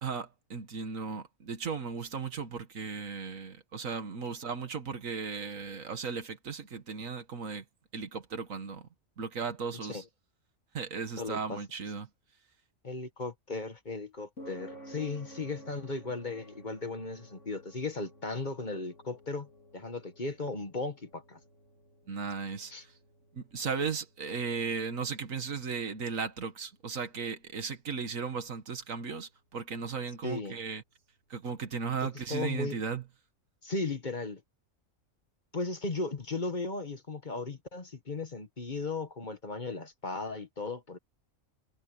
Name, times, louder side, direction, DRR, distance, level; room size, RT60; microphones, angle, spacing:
voice 1, 0.0-7.6 7.9-8.9 9.2-10.0 10.7-12.1 22.1-22.7 23.3-30.8 31.3-33.0, right 5 dB, 75° right, 2.0 m, -36 dB
voice 2, 11.2-11.6 12.8-19.5 19.7-21.4 22.7-22.8 30.2-30.6 32.0-32.8 33.6-34.4 35.5-41.0, left 3 dB, 35° left, 1.5 m, -36 dB
sound 1, 14.4-30.9, right 1 dB, 65° left, 4.0 m, -55 dB
omnidirectional pair, 1.4 m